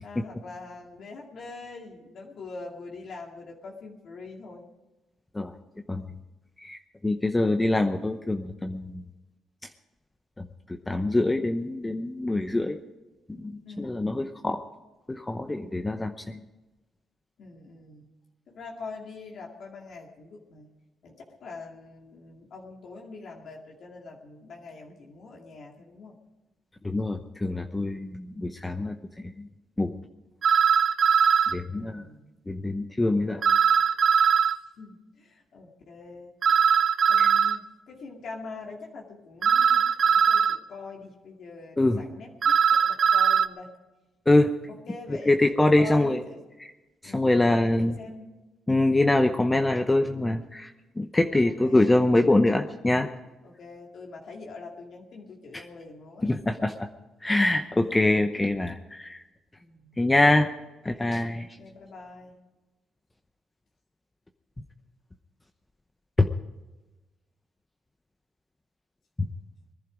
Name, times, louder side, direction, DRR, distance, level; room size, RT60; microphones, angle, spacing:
voice 1, 0.0-4.6 13.7-14.3 17.4-18.1 18.5-20.7 21.0-21.1 21.4-26.2 31.7-32.3 34.8-36.8 37.1-43.7 44.7-46.4 47.0-48.3 51.4-52.0 53.4-56.3 59.6-60.0 61.4-62.3, left 3 dB, 60° left, -1 dB, 2.3 m, -44 dB
voice 2, 6.6-9.0 10.4-12.8 13.4-14.6 15.1-16.4 26.8-29.5 29.8-29.9 31.5-32.0 32.5-33.4 37.2-37.3 41.8-42.0 44.3-44.5 45.2-46.2 47.0-48.0 48.7-53.1 55.5-55.6 56.2-56.9 57.2-59.2 60.0-60.5 60.8-61.5 66.2-66.3, left 2 dB, 15° left, 6 dB, 0.8 m, -24 dB
sound 1, 30.4-31.5 33.4-34.6 36.4-37.6 39.4-40.6 42.4-43.5, right 7 dB, 55° right, 0.6 m, -20 dB
20.5 x 11.0 x 5.0 m, 1.1 s
cardioid pair, 90°, 0 cm